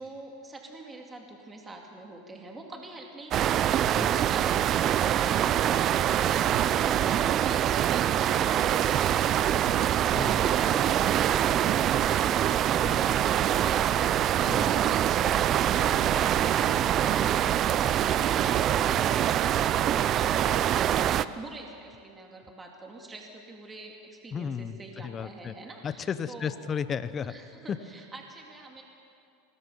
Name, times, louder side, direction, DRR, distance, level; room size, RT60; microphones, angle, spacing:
voice 1, 0.0-3.7 14.4-26.6 27.3-28.8, right 2 dB, 15° right, 1 dB, 2.3 m, -45 dB
sound 1, 3.3-21.2, right 11 dB, 40° right, 0.5 m, -24 dB
voice 2, 3.9-4.3 10.1-10.5 12.8-13.0 14.5-14.8 24.3-25.5 25.8-27.3 27.7-27.8, left 7 dB, 25° left, 13 dB, 0.8 m, -34 dB
Sink (filling or washing), 5.9-7.5 8.7-10.9, right 12 dB, 80° right, 1.0 m, -45 dB
24.5 x 20.5 x 5.5 m, 2.5 s
supercardioid pair, 125°, 0 cm